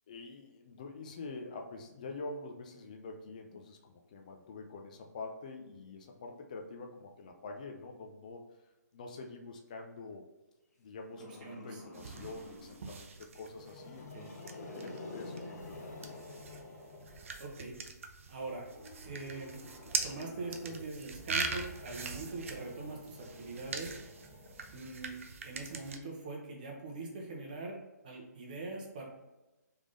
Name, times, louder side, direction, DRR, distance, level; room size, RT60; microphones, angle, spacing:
voice 1, 0.1-8.4 8.9-10.3 10.8-16.1, left 3 dB, 25° left, 2 dB, 0.3 m, -46 dB
Growling, 11.2-12.9 13.4-17.6 18.6-25.1, left 2 dB, 60° left, 1.2 m, -50 dB
voice 2, 11.4-11.8 14.1-14.3 17.4-17.7 18.3-18.7 19.0-19.6 20.0-23.9 24.7-25.2 25.4-27.8 28.0-29.0, right 3 dB, 30° right, -1 dB, 0.8 m, -42 dB
sound 1, 11.9-26.0, right 4 dB, 50° right, 0.4 m, -42 dB
3.5 x 3.4 x 3.8 m, 1.0 s
hypercardioid pair, 170°, 10 cm